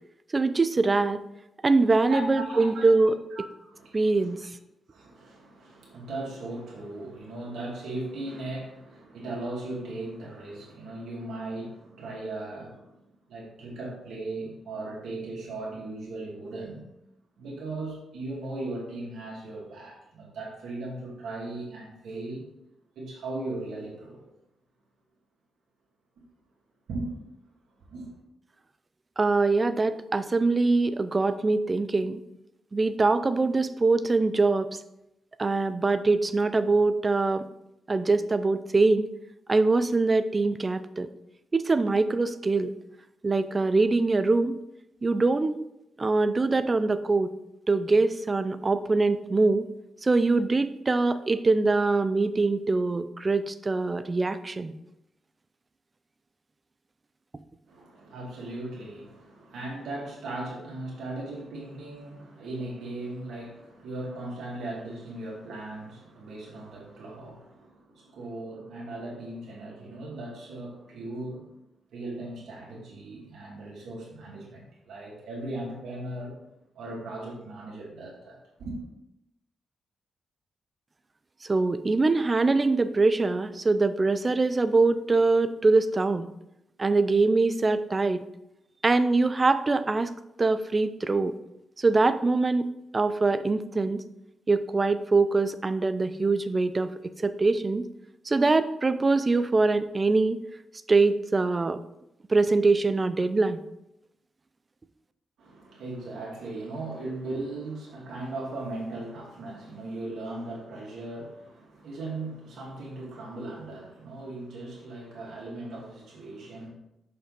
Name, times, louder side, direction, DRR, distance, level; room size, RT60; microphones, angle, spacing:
voice 1, 0.3-1.2 1.6-3.2 3.9-4.4 29.2-32.2 32.7-34.7 35.4-37.4 37.9-39.1 39.5-41.1 41.5-42.7 43.2-44.6 45.0-45.5 46.0-47.3 47.7-49.6 50.0-54.7 81.4-86.3 86.8-88.2 88.8-90.1 90.4-91.3 91.8-92.7 92.9-94.0 94.5-97.9 98.3-100.4 100.9-101.8 102.3-103.6, right 3 dB, 30° right, 11 dB, 0.5 m, -23 dB
voice 2, 2.1-3.0 3.4-4.5 4.9-12.9 13.3-16.8 17.4-22.5 23.0-24.3 26.9-27.1 27.8-28.1 57.7-71.5 71.9-76.4 76.7-78.8 105.4-116.7, right 2 dB, 85° right, -3 dB, 2.5 m, -38 dB
6.6 x 5.5 x 4.0 m, 0.84 s
cardioid pair, 85°, 0 cm